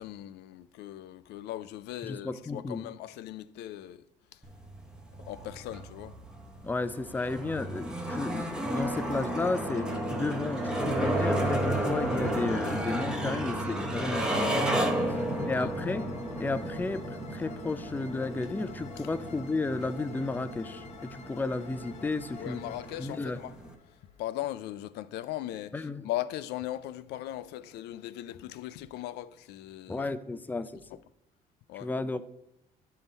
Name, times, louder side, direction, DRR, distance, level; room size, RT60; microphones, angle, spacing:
voice 1, 0.0-4.0 5.3-6.1 14.8-15.1 15.3-15.7 22.4-23.5 24.2-30.1 31.7-31.9, left 13 dB, 80° left, 0.4 m, -39 dB
voice 2, 2.0-2.8 6.6-15.2 15.5-16.1 16.4-22.6 23.0-23.4 25.7-26.1 29.9-30.8 31.7-32.2, left 3 dB, 10° left, 0.3 m, -33 dB
sound 1, 4.4-23.7, right 1 dB, 5° right, 0.8 m, -33 dB
sound 2, 9.7-24.5, left 5 dB, 40° left, 0.7 m, -50 dB
9.2 x 3.8 x 4.0 m
cardioid pair, 110°, 17 cm